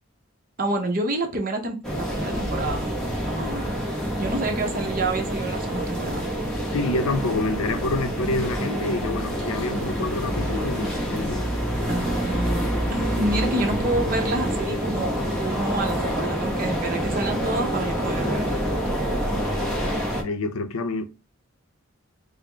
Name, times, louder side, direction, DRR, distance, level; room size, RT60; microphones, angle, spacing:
voice 1, 0.6-3.0 3.3-3.7 4.2-6.3 11.9-18.6, right 2 dB, 40° right, 0.7 m, -28 dB
sound 1, 1.8-20.2, equal, 5° left, 0.8 m, -27 dB
voice 2, 6.7-11.5 20.2-21.1, left 2 dB, 85° left, 0.5 m, -27 dB
4.9 x 2.0 x 3.3 m
head